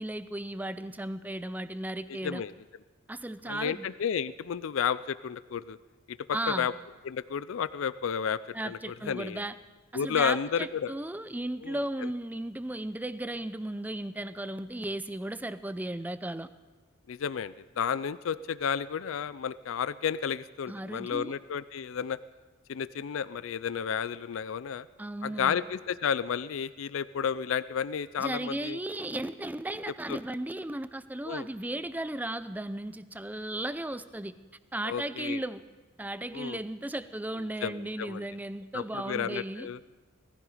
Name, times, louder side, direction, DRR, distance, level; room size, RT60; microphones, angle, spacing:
voice 1, 0.0-2.4 3.1-3.9 6.3-6.7 8.5-9.5 9.9-16.5 20.7-21.3 25.0-25.6 28.2-34.3 34.7-35.6 36.0-39.7, right 1 dB, 10° right, 13 dB, 0.4 m, -35 dB
voice 2, 3.5-5.8 6.1-6.7 7.0-9.4 9.9-10.9 11.6-11.8 17.1-22.2 22.7-24.9 25.2-28.8 30.1-30.2 31.3-31.5 34.8-35.4 36.3-36.6 37.6-38.2 38.7-39.8, left 7 dB, 70° left, 16 dB, 0.4 m, -32 dB
18.5 x 14.5 x 4.9 m, 1.3 s
head